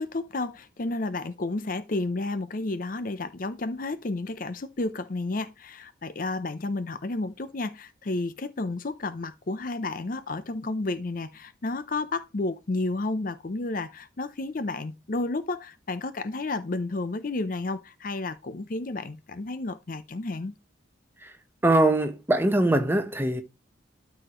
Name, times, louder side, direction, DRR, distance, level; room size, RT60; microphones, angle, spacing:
voice 1, 0.0-20.5, left 2 dB, 45° left, 0.6 m, -31 dB
voice 2, 21.6-23.4, right 1 dB, 10° right, 1.0 m, -22 dB
12.5 x 4.9 x 3.0 m
head